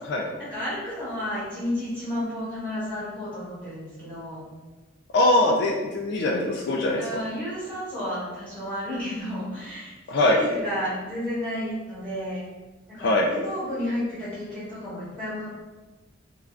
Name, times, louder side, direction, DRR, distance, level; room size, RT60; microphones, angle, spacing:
voice 1, 0.4-4.4 6.9-12.4 12.9-15.5, equal, 10° right, -12 dB, 0.8 m, -32 dB
voice 2, 5.1-7.0 10.1-10.4 13.0-13.3, left 1 dB, 55° left, 0 dB, 0.3 m, -22 dB
3.2 x 2.3 x 2.4 m, 1.2 s
head